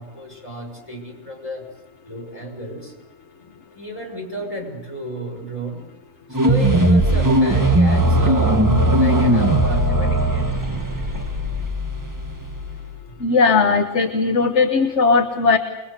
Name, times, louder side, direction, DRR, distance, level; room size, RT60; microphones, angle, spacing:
voice 1, 0.0-1.7 2.0-2.9 3.4-5.8 6.3-8.6 9.0-10.5 13.1-13.2, right 1 dB, 25° left, 0 dB, 5.8 m, -33 dB
sound 1, 6.3-13.0, right 1 dB, 15° right, 1.6 m, -18 dB
voice 2, 13.2-15.6, left 4 dB, 55° left, 6 dB, 1.5 m, -17 dB
28.0 x 22.0 x 6.6 m, 1.1 s
omnidirectional pair, 1.5 m